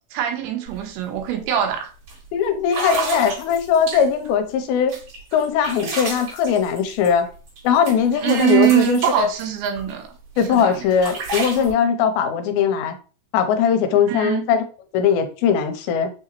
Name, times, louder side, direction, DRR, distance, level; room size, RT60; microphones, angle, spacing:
voice 1, 0.1-1.9 8.2-10.1 10.5-10.8 14.1-14.5, right 11 dB, 85° right, 2.8 m, -22 dB
sound 1, 0.7-0.8 1.1-1.4 2.1-2.2 2.6-4.3 4.9-7.6 7.9-9.9 10.4-11.7, right 4 dB, 50° right, 3.0 m, -31 dB
voice 2, 2.3-4.9 5.3-7.3 7.6-9.3 10.4-13.0 13.3-14.6 14.9-16.1, left 7 dB, 90° left, 2.5 m, -20 dB
6.2 x 2.8 x 2.9 m
omnidirectional pair, 4.3 m